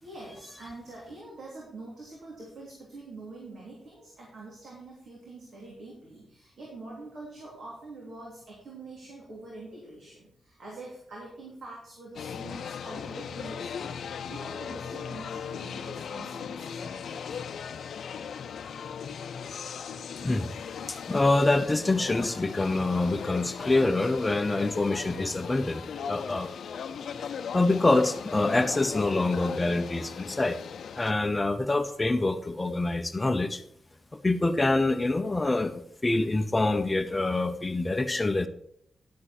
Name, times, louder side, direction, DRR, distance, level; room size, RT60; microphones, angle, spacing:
voice 1, 0.0-17.5, right 2 dB, 65° right, -3 dB, 3.0 m, -45 dB
sound 1, 12.1-31.1, left 7 dB, 80° left, 0.5 m, -38 dB
voice 2, 20.9-26.5 27.5-30.6 30.9-33.6 34.1-38.5, left 2 dB, 20° left, 9 dB, 0.6 m, -26 dB
11.0 x 7.5 x 4.3 m, 0.68 s
wide cardioid pair, 115°, 0 cm